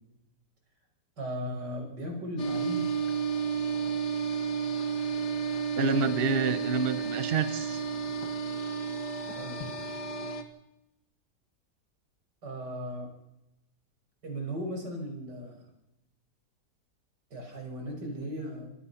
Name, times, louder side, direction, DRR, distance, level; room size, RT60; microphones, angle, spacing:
voice 1, 1.2-2.9 9.2-9.6 12.4-13.1 14.2-15.6 17.3-18.7, equal, 80° right, 2 dB, 6.4 m, -37 dB
sound 1, 2.4-10.4, right 5 dB, 75° left, 2.5 m, -32 dB
voice 2, 5.8-7.8, right 5 dB, 40° right, 12 dB, 1.0 m, -28 dB
26.5 x 17.5 x 5.7 m, 0.88 s
omnidirectional pair, 1.8 m